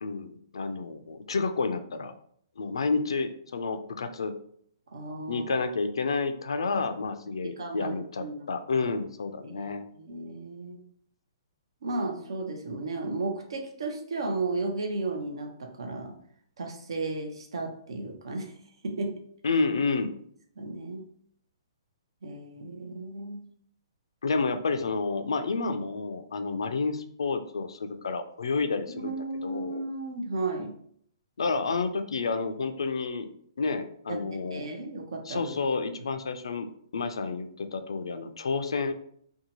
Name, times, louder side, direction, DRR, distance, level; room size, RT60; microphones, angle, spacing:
voice 1, 0.0-2.1 2.6-4.3 5.3-9.8 19.4-20.2 24.2-29.1 29.4-29.8 31.4-33.3 33.6-34.7 35.2-36.7 36.9-38.9, left 4 dB, 85° left, 8 dB, 0.3 m, -30 dB
voice 2, 4.9-5.5 7.4-8.5 9.5-10.8 11.8-16.1 16.6-18.5 18.8-19.1 20.6-21.0 22.2-23.4 28.9-30.7 34.1-35.5, right 2 dB, 75° right, 4 dB, 0.6 m, -34 dB
2.7 x 2.2 x 2.8 m, 0.64 s
hypercardioid pair, 145°, 3 cm